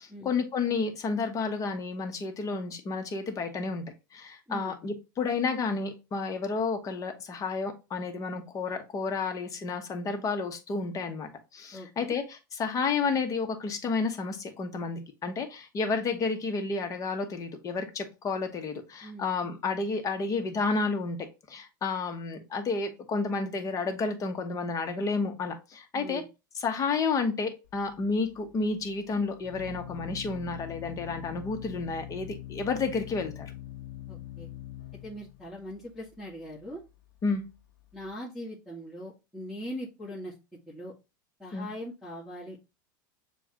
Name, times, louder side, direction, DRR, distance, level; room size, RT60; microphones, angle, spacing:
voice 1, 0.0-3.8 4.1-21.2 21.5-26.2 26.6-33.5 37.2-37.4 41.5-41.7, left 4 dB, 30° left, 5 dB, 1.1 m, -31 dB
voice 2, 11.7-12.1 19.0-19.3 25.9-26.2 34.1-34.5 35.0-36.8 37.9-40.3 40.7-40.9 41.4-42.7, equal, ahead, -9 dB, 1.7 m, -41 dB
Organ, 27.6-38.1, left 13 dB, 90° left, 0.9 m, -44 dB
6.9 x 2.4 x 2.9 m, 0.27 s
hypercardioid pair, 100°, 11 cm